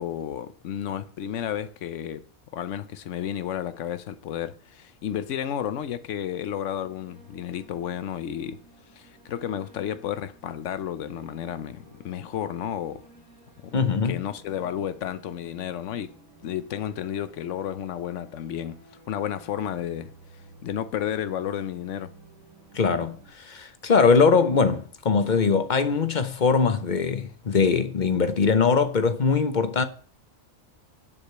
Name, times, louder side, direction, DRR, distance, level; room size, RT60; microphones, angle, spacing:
voice 1, 0.0-2.2 2.5-8.6 9.0-13.0 13.6-13.8 14.0-16.1 16.4-18.8 19.1-20.1 20.6-22.1, left 10 dB, 70° left, 1.1 m, -32 dB
sound 1, 6.5-23.3, right 3 dB, 85° right, 5.1 m, -54 dB
voice 2, 13.7-14.2 22.7-29.8, left 5 dB, 45° left, 0.8 m, -22 dB
9.8 x 4.9 x 7.9 m
omnidirectional pair, 1.4 m